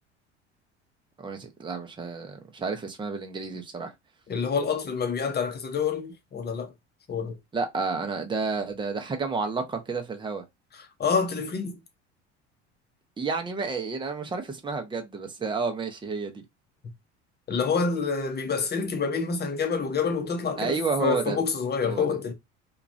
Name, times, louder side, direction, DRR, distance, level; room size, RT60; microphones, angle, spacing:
voice 1, 1.2-3.9 7.5-10.4 13.2-16.4 20.6-21.4 21.8-22.1, right 4 dB, 15° right, 0.8 m, -30 dB
voice 2, 4.3-6.7 7.1-7.4 10.7-11.8 17.5-22.3, left 5 dB, 30° left, 0.9 m, -27 dB
3.0 x 2.4 x 2.6 m
hypercardioid pair, 70°, 35 cm